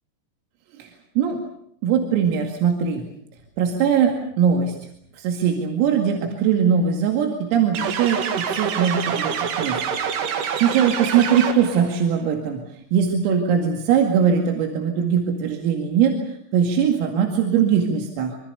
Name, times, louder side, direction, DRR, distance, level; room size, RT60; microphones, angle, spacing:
voice 1, 0.8-1.4 1.8-3.0 3.6-4.8 5.1-9.8 10.2-10.3 10.6-12.6 12.9-18.4, right 7 dB, 90° right, 3 dB, 4.9 m, -21 dB
sound 1, 7.7-11.9, right 7 dB, 70° right, 4.4 m, -26 dB
25.0 x 24.5 x 6.9 m, 0.68 s
omnidirectional pair, 5.9 m